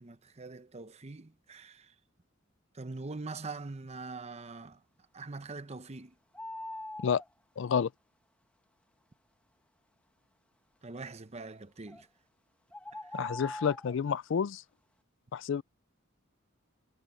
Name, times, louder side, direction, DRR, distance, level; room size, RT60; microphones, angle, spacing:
voice 1, 0.0-1.9 2.7-4.8 5.1-6.1 10.8-12.1 12.9-13.1, right 3 dB, 35° right, 0.8 m, -43 dB
sound 1, 6.3-7.3 11.9-12.0 12.7-14.0, left 1 dB, 5° left, 1.4 m, -42 dB
voice 2, 7.6-7.9 13.1-14.6 15.3-15.6, left 7 dB, 65° left, 0.4 m, -29 dB
head